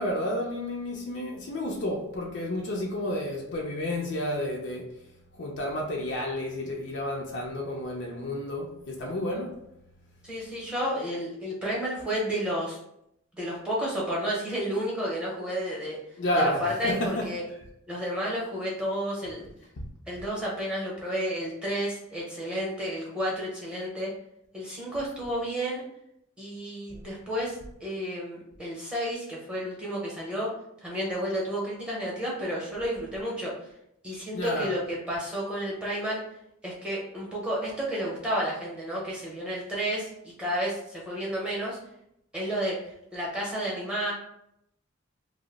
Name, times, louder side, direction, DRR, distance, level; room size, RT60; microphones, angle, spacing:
voice 1, 0.0-4.9 5.4-9.5 16.2-17.2 34.3-34.7, left 1 dB, 65° left, 0.5 m, -30 dB
voice 2, 10.2-12.8 13.3-16.0 16.3-17.4 17.9-19.5 20.1-24.1 24.5-25.8 26.4-30.5 30.8-33.5 34.0-36.2 36.6-41.8 42.3-42.8 43.1-44.1, equal, 5° right, 0.7 m, -31 dB
2.7 x 2.0 x 3.9 m
head